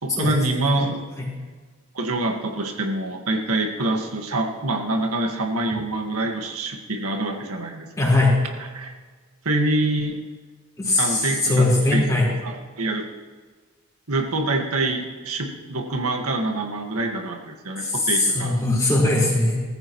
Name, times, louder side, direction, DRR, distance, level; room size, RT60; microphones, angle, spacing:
voice 1, 0.0-1.0 1.9-8.1 8.7-8.9 9.5-10.2 11.0-11.7 11.9-12.0 12.4-13.0 14.1-18.6, right 2 dB, 85° right, 2 dB, 1.8 m, -25 dB
voice 2, 8.0-8.4 10.8-12.2 17.8-19.6, left 2 dB, 15° left, -5 dB, 4.6 m, -20 dB
20.0 x 14.0 x 3.2 m, 1.4 s
head